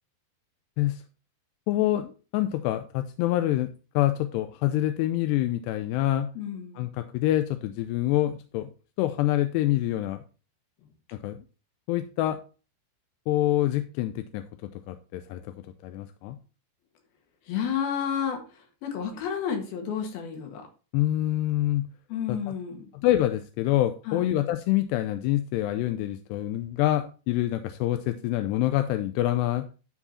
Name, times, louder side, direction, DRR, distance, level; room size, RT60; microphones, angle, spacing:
voice 1, 1.7-6.3 6.8-8.7 9.0-10.2 11.1-11.4 11.9-12.4 13.3-14.4 14.9-15.5 15.8-16.4 20.9-21.9 22.3-22.5 22.9-29.7, left 14 dB, 85° left, 9 dB, 2.7 m, -26 dB
voice 2, 6.4-6.9 17.5-20.6 22.1-22.9 24.1-24.3, left 8 dB, 65° left, 4 dB, 3.5 m, -31 dB
12.5 x 4.8 x 4.2 m, 0.34 s
omnidirectional pair, 4.8 m